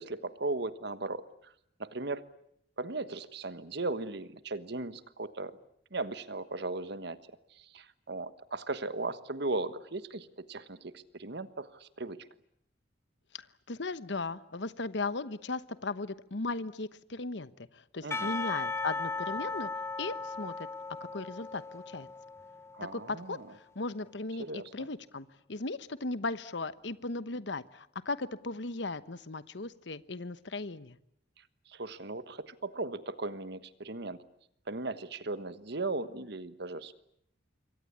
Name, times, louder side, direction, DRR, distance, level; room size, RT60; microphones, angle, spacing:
voice 1, 0.0-1.5 1.8-2.2 2.8-5.6 5.9-7.2 7.5-12.2 18.0-18.3 22.7-23.5 24.4-24.9 31.7-34.2 34.7-36.9, right 3 dB, 65° right, 13 dB, 1.4 m, -37 dB
voice 2, 13.3-19.7 20.0-20.5 21.1-22.1 22.9-31.0, left 3 dB, 70° left, 14 dB, 1.1 m, -37 dB
Percussion / Church bell, 18.1-23.2, left 3 dB, 15° left, 1.0 m, -37 dB
27.0 x 23.5 x 8.6 m, 0.72 s
head